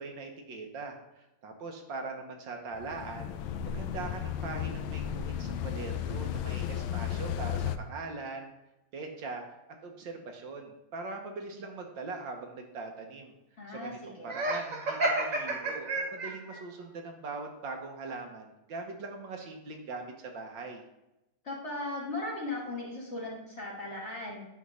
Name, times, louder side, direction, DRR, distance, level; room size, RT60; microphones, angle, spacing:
voice 1, 0.0-3.3 3.7-8.5 8.9-9.4 9.8-13.4 13.7-13.9 14.2-20.8, right 3 dB, 65° right, 3 dB, 1.6 m, -41 dB
sound 1, 2.7-7.8, left 9 dB, 80° left, 1.4 m, -34 dB
voice 2, 13.6-14.4 21.4-24.5, left 2 dB, 35° left, -3 dB, 1.9 m, -37 dB
Laughter, 14.3-16.6, right 2 dB, 45° right, 1.7 m, -30 dB
9.5 x 3.6 x 6.2 m, 0.91 s
omnidirectional pair, 2.2 m